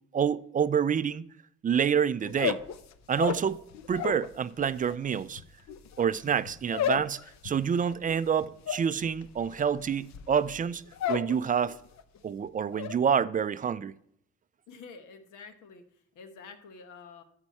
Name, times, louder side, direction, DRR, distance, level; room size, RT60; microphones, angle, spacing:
voice 1, 0.1-1.3 1.6-2.6 3.1-5.4 6.0-10.8 11.1-11.8 12.2-13.9, right 7 dB, 30° right, 0.3 m, -27 dB
sound 1, 2.3-4.3 4.6-11.4 11.7-12.2 12.5-13.0, left 9 dB, 65° left, 0.7 m, -34 dB
voice 2, 14.7-15.8 16.1-17.2, left 5 dB, 80° left, 1.2 m, -48 dB
13.0 x 4.5 x 4.2 m
cardioid pair, 90°, 30 cm